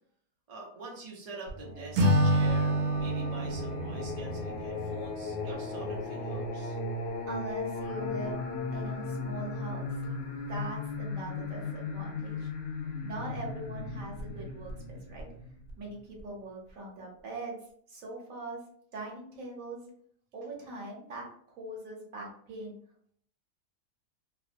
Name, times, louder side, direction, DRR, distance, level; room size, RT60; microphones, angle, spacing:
voice 1, 0.5-6.8, right 3 dB, 40° right, -2 dB, 0.5 m, -45 dB
Singing, 1.5-16.2, left 3 dB, 65° left, 0.8 m, -37 dB
Acoustic guitar / Strum, 2.0-5.2, right 1 dB, 85° right, 1.1 m, -28 dB
voice 2, 7.3-8.4 8.7-9.8 10.5-12.5 13.0-15.3 15.8-17.6 17.9-18.6 18.9-19.9 20.3-22.8, right 2 dB, 65° right, -3 dB, 1.2 m, -41 dB
2.9 x 2.1 x 2.5 m, 0.62 s
omnidirectional pair, 1.6 m